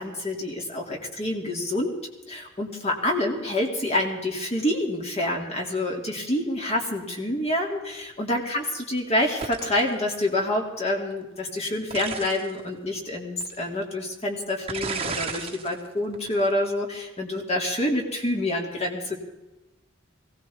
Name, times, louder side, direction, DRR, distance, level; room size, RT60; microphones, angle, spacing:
voice 1, 0.0-2.0 2.3-19.2, left 1 dB, 30° left, 1 dB, 2.7 m, -27 dB
sound 1, 9.4-9.9 11.9-12.5 13.4-13.5 14.7-15.7 16.1-16.5, right 5 dB, 30° right, 1.3 m, -33 dB
21.5 x 17.5 x 3.6 m, 1.0 s
head